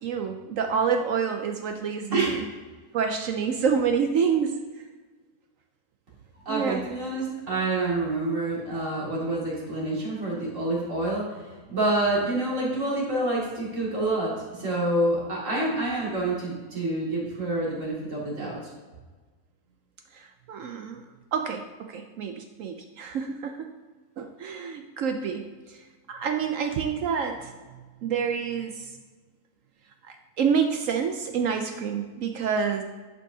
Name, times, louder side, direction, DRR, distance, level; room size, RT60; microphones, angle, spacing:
voice 1, 0.0-2.4 2.9-4.5 6.5-6.8 20.1-21.0 21.3-23.7 24.2-25.4 25.7-25.8 26.1-27.5 28.0-28.9 30.1-32.8, right 6 dB, 65° right, 5 dB, 0.8 m, -27 dB
voice 2, 2.1-2.4 6.5-18.6, right 2 dB, 50° right, -5 dB, 2.6 m, -27 dB
10.5 x 5.4 x 2.7 m, 1.3 s
omnidirectional pair, 1.7 m